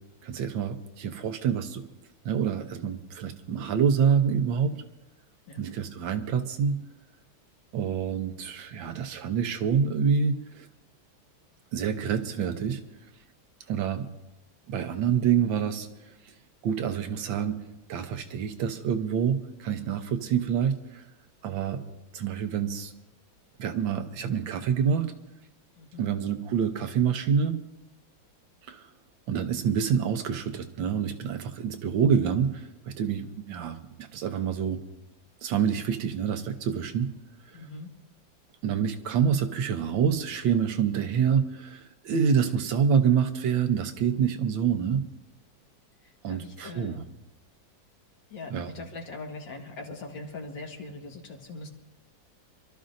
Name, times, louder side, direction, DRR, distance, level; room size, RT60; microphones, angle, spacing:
voice 1, 0.2-1.8 2.2-4.8 5.6-6.8 7.7-10.7 11.7-12.8 13.7-14.1 14.7-16.1 16.6-17.6 17.9-21.1 21.4-21.8 22.1-22.9 23.6-25.1 26.0-27.6 28.7-28.9 29.3-34.8 35.4-37.1 38.6-45.0 46.2-47.0 48.5-48.7, right 7 dB, 80° right, 7 dB, 1.6 m, -27 dB
voice 2, 25.8-26.2 37.5-37.9 46.0-47.0 48.3-51.7, left 3 dB, 70° left, 2 dB, 2.2 m, -41 dB
27.5 x 12.5 x 2.6 m, 0.95 s
omnidirectional pair, 2.1 m